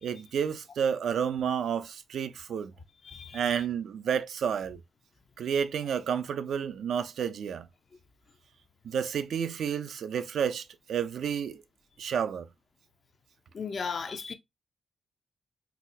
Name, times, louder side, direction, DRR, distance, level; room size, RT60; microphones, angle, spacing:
voice 1, 0.0-2.7 3.3-4.8 5.4-7.7 8.8-11.6 12.0-12.5, right 7 dB, 75° right, 0.3 m, -30 dB
voice 2, 3.0-3.6 13.5-14.3, left 5 dB, 55° left, 0.5 m, -36 dB
3.9 x 2.1 x 2.6 m
cardioid pair, 60°, 0 cm